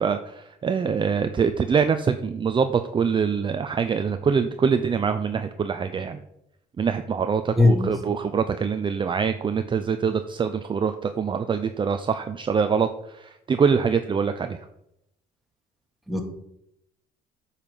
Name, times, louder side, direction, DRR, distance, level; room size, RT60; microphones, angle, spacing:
voice 1, 0.0-6.2 6.8-14.6, right 6 dB, 30° right, 9 dB, 0.6 m, -24 dB
voice 2, 7.6-8.1 16.1-16.2, left 3 dB, ahead, 1 dB, 2.2 m, -20 dB
8.9 x 5.8 x 6.9 m, 0.81 s
cardioid pair, 110°, 17 cm